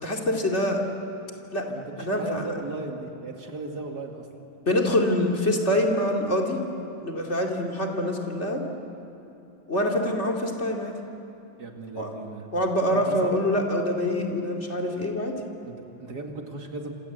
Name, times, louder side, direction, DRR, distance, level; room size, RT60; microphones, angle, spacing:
voice 1, 0.0-0.8 1.5-1.7 2.0-2.5 4.6-6.6 7.0-8.6 9.7-11.0 12.0-12.1 12.5-15.4, left 1 dB, 35° left, 1 dB, 2.9 m, -25 dB
voice 2, 1.7-4.3 11.6-12.5 13.0-13.3 15.6-16.9, right 3 dB, 55° right, 2 dB, 2.9 m, -36 dB
27.5 x 27.0 x 8.0 m, 2.8 s
omnidirectional pair, 2.1 m